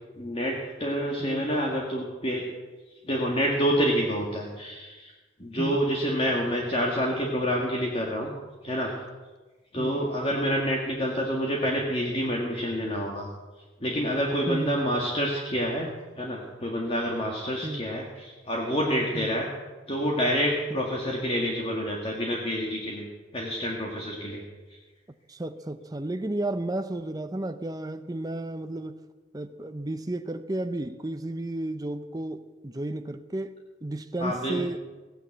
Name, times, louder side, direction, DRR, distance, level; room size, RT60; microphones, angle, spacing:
voice 1, 0.1-2.5 3.0-5.1 5.4-8.3 8.6-8.9 9.7-13.3 13.8-15.9 16.2-19.5 19.9-23.1 23.3-24.4 34.2-34.6, equal, 30° left, -1 dB, 1.9 m, -28 dB
voice 2, 14.5-14.9 17.6-17.8 19.1-19.3 20.8-20.9 25.3-29.0 29.3-34.9, right 1 dB, 20° right, 8 dB, 0.6 m, -33 dB
16.5 x 9.8 x 7.8 m, 1.2 s
head